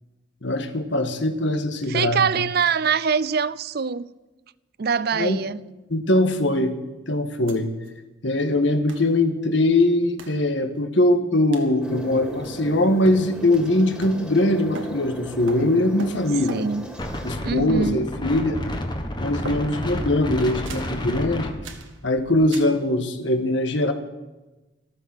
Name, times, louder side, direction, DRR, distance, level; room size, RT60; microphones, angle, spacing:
voice 1, 0.4-2.2 5.1-5.5 5.9-6.7 7.1-7.7 8.2-16.7 17.2-18.6 19.2-21.5 22.0-23.9, left 1 dB, 65° left, 1.6 m, -21 dB
voice 2, 1.9-4.1 4.8-5.6 16.5-16.9 17.4-18.0, right 6 dB, 50° right, 0.5 m, -23 dB
sound 1, 7.5-7.6 7.9-8.0 8.9-9.1 10.2-10.4 11.5-11.8 12.4-12.8 13.0-14.5 14.7-16.9 17.6-18.2 18.5-19.0 19.5-20.0 20.6-21.0 21.6-21.9 22.5-22.8, right 2 dB, 75° right, 1.8 m, -40 dB
sound 2, 11.8-17.3, equal, 5° right, 2.5 m, -37 dB
Wind, 17.0-22.5, left 1 dB, 20° left, 1.4 m, -30 dB
14.5 x 13.5 x 6.2 m
head